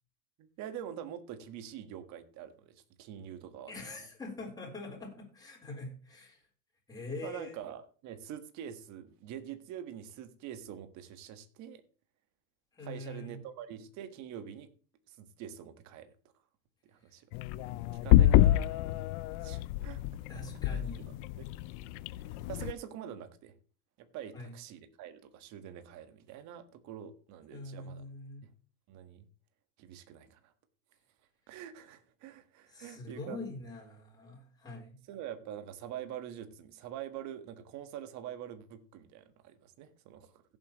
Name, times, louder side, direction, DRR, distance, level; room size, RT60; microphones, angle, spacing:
voice 1, 0.4-3.7 7.2-11.8 12.8-14.7 15.1-16.1 16.8-17.3 18.0-18.8 19.4-20.0 20.7-20.8 21.4-21.5 22.5-23.5 24.0-28.0 28.4-28.5 28.9-29.3 29.8-30.5 31.5-33.5 35.1-40.4, right 10 dB, 45° right, 1.5 m, -45 dB
voice 2, 3.7-6.4 6.9-7.6 12.7-13.4 20.3-21.2 24.3-24.5 27.5-28.4 32.7-35.0, left 2 dB, 10° left, 3.9 m, -44 dB
sound 1, 17.3-22.7, left 14 dB, 50° left, 0.6 m, -27 dB
16.5 x 7.6 x 3.0 m
supercardioid pair, 150°, 41 cm